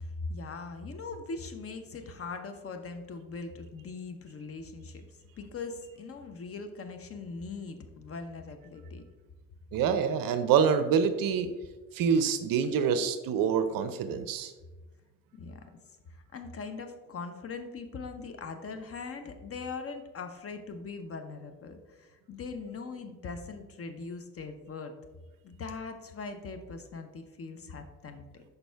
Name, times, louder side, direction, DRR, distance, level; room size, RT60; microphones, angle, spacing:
voice 1, 0.0-9.0 15.3-15.7 16.1-24.9 25.4-28.4, left 4 dB, 30° left, 7 dB, 0.7 m, -41 dB
voice 2, 9.7-11.5 11.9-14.5, right 7 dB, 45° right, 10 dB, 0.6 m, -26 dB
6.0 x 5.4 x 3.4 m, 1.2 s
hypercardioid pair, 65°, 49 cm